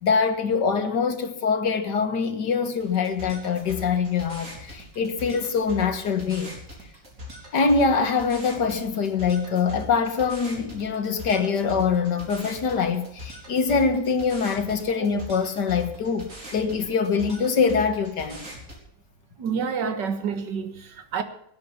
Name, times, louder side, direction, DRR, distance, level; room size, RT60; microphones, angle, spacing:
voice 1, 0.0-6.5 7.5-18.5, left 5 dB, 70° left, 2.0 m, -24 dB
sound 1, 2.8-18.8, left 2 dB, 45° right, 4.5 m, -41 dB
voice 2, 19.4-21.2, right 6 dB, 70° right, 2.1 m, -28 dB
19.0 x 8.8 x 7.0 m
omnidirectional pair, 1.9 m